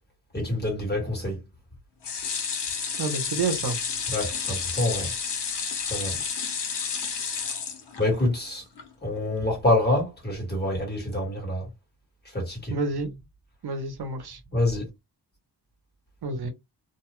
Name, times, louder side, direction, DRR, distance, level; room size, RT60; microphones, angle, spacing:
voice 1, 0.3-1.4 4.1-5.1 5.9-6.1 8.0-8.6 9.0-11.7 12.3-12.7 14.5-14.8, left 1 dB, 25° left, 1.5 m, -26 dB
sound 1, 2.0-8.3 8.8-8.9 9.2-9.3, left 6 dB, 75° left, 1.0 m, -31 dB
voice 2, 3.0-3.8 12.7-13.1 13.6-14.4 16.2-16.5, right 3 dB, 70° right, 0.8 m, -29 dB
2.6 x 2.3 x 3.0 m
wide cardioid pair, 170°, 41 cm